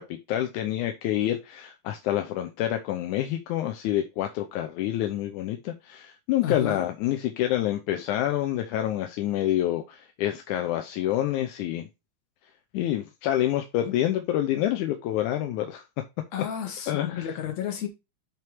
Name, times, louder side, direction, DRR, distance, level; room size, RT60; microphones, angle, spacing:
voice 1, 0.0-11.9 12.7-15.8 16.9-17.3, left 12 dB, 85° left, 2.2 m, -27 dB
voice 2, 6.4-6.9 16.3-17.9, left 8 dB, 65° left, 2.6 m, -32 dB
7.8 x 3.5 x 4.5 m
omnidirectional pair, 3.5 m